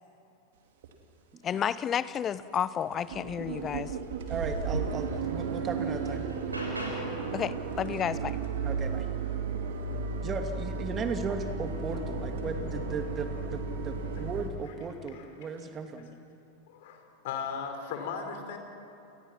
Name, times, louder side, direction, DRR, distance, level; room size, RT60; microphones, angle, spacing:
sound 1, 0.8-0.9 1.4-1.8 2.1-2.2 2.5-2.7 2.9-14.5, right 4 dB, 60° right, 2.8 m, -34 dB
voice 1, 1.4-3.9 7.3-8.4, left 9 dB, 25° left, 16 dB, 0.8 m, -31 dB
voice 2, 4.3-6.2 8.6-9.1 10.2-16.1, right 4 dB, 25° right, 6 dB, 2.6 m, -36 dB
sound 2, 4.9-5.0 5.5-7.3 9.7-9.8 10.2-13.2 13.9-14.4 15.5-15.7, equal, 80° right, 7.3 m, -42 dB
voice 3, 16.7-18.6, left 6 dB, 50° left, 5 dB, 4.5 m, -37 dB
29.5 x 29.0 x 6.0 m, 2.7 s
figure-of-eight pair, 90°, 0 cm